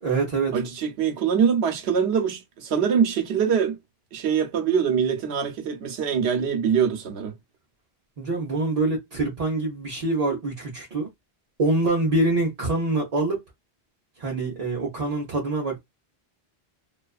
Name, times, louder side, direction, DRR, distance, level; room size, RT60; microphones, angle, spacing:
voice 1, 0.0-0.6 8.2-11.1 11.6-13.4 14.2-15.8, right 2 dB, 40° right, 0.8 m, -25 dB
voice 2, 0.5-3.8 4.1-7.3, right 7 dB, 85° right, 0.9 m, -23 dB
2.4 x 2.3 x 2.3 m
omnidirectional pair, 1.0 m